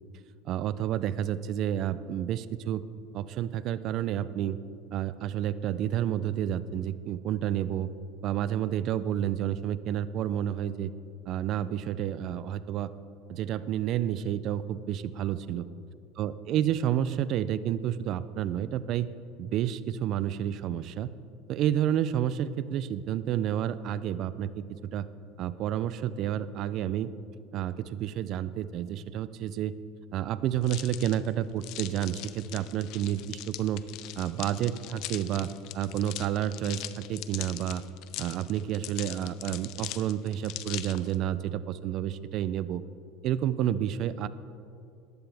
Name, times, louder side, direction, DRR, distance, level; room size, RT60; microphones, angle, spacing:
voice 1, 0.4-2.8 3.1-4.6 4.9-7.9 8.2-10.9 11.3-12.9 13.3-15.6 16.2-19.1 19.4-21.1 21.5-24.6 24.9-25.1 25.4-27.1 27.5-29.7 30.1-33.8 34.2-37.8 38.2-42.8 43.2-44.3, right 11 dB, 50° right, 15 dB, 0.5 m, -30 dB
sound 1, 30.6-41.1, left 15 dB, 60° left, 0.5 m, -41 dB
14.5 x 11.0 x 3.5 m, 2.5 s
supercardioid pair, 115°, 0 cm